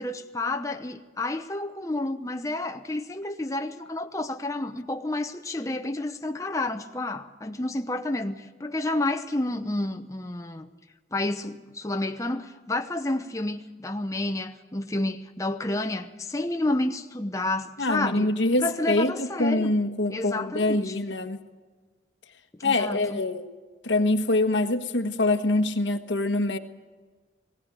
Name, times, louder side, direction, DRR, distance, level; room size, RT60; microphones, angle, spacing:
voice 1, 0.0-10.7 11.1-18.3 18.6-19.7 20.1-21.0 22.5-23.2, left 2 dB, 15° left, 0.7 m, -30 dB
voice 2, 17.8-21.4 22.6-23.5 23.8-26.6, left 2 dB, 85° left, 1.4 m, -25 dB
19.5 x 16.5 x 8.9 m
head